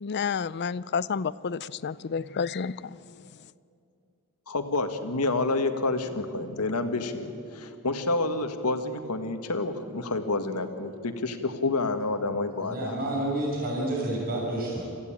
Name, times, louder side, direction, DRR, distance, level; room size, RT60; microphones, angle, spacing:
voice 1, 0.0-2.8, left 6 dB, 50° left, 19 dB, 0.5 m, -30 dB
voice 2, 4.5-13.0, left 2 dB, 90° left, 7 dB, 1.7 m, -29 dB
voice 3, 12.6-14.8, right 1 dB, 45° right, -4 dB, 6.6 m, -29 dB
26.0 x 15.5 x 9.0 m, 2.5 s
head